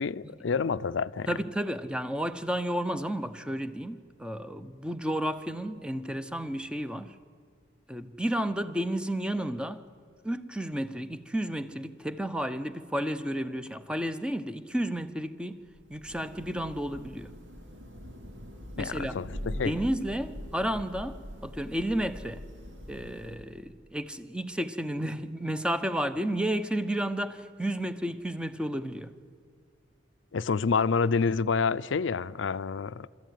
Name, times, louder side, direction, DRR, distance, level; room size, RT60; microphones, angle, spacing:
voice 1, 0.0-1.3 18.8-19.7 30.3-33.1, left 5 dB, 80° left, 0.5 m, -28 dB
voice 2, 1.3-7.2 7.9-9.8 10.2-15.6 15.9-17.3 18.8-19.2 19.5-22.4 22.9-29.1, right 1 dB, 5° right, 0.7 m, -32 dB
Thunder / Rain, 15.7-23.7, equal, 85° right, 2.6 m, -43 dB
26.5 x 14.0 x 9.3 m
head